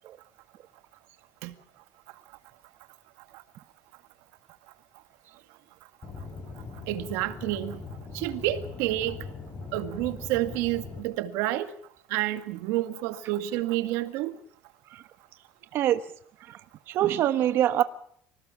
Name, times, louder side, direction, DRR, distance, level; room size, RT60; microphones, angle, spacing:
Aircraft / Engine, 6.0-11.0, left 4 dB, 25° left, 4.6 m, -41 dB
voice 1, 6.9-7.8 8.1-9.2 9.7-11.7 12.1-14.4, right 15 dB, 90° right, 2.0 m, -29 dB
voice 2, 15.7-16.0 16.4-16.6 16.9-17.8, right 11 dB, 55° right, 1.2 m, -24 dB
26.0 x 18.0 x 7.2 m
cardioid pair, 150°, 5 cm